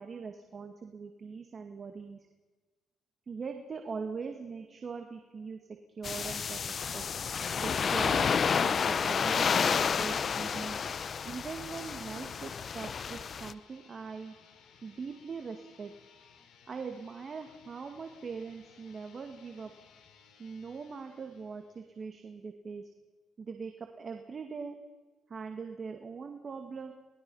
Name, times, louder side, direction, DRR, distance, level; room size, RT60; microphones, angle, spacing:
voice 1, 0.0-2.3 3.3-5.6 6.0-6.6 6.9-7.1 7.6-10.8 11.2-14.3 14.8-15.9 16.7-19.7 20.4-22.9 23.4-24.8 25.3-26.9, right 5 dB, 45° right, 5 dB, 2.0 m, -41 dB
sound 1, 6.0-13.5, left 6 dB, 50° left, 0.7 m, -30 dB
sound 2, 9.2-22.0, left 6 dB, 85° left, 3.3 m, -60 dB
24.5 x 20.0 x 5.6 m, 1.3 s
cardioid pair, 90°, 0 cm